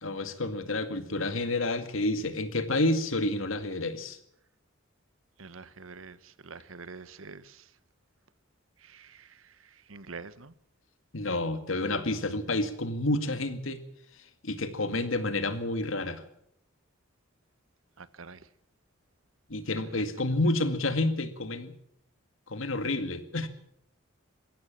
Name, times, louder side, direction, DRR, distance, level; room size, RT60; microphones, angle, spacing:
voice 1, 0.0-4.2 11.1-13.8 14.4-16.2 19.5-21.7 22.5-23.5, left 2 dB, 80° left, 2.1 m, -29 dB
voice 2, 5.4-7.6 8.8-9.3 9.9-10.5 18.0-18.4 19.9-20.0, right 4 dB, 85° right, 1.1 m, -46 dB
22.0 x 16.0 x 7.5 m
head